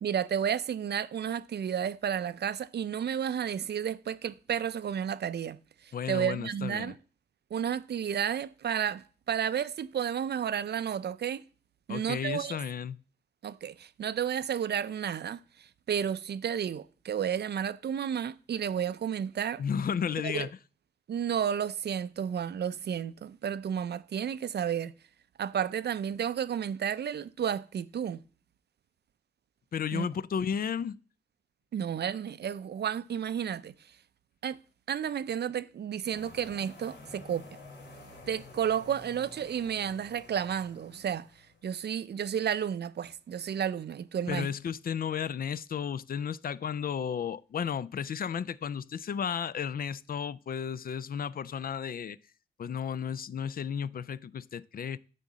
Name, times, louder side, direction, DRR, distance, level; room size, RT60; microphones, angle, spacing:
voice 1, 0.0-7.0 7.5-11.4 11.9-12.6 13.4-19.6 20.2-20.5 21.1-24.9 25.4-28.2 29.9-30.1 31.7-33.7 34.4-34.6 34.9-37.5 38.3-41.3 41.6-44.5, right 8 dB, 70° right, 0.5 m, -32 dB
voice 2, 5.9-6.9 11.9-13.0 19.6-20.5 29.7-31.0 44.3-52.2 52.6-55.0, left 7 dB, 55° left, 0.4 m, -33 dB
sound 1, 36.1-41.6, left 2 dB, 85° left, 3.4 m, -50 dB
11.0 x 3.9 x 7.3 m
wide cardioid pair, 175°, 18 cm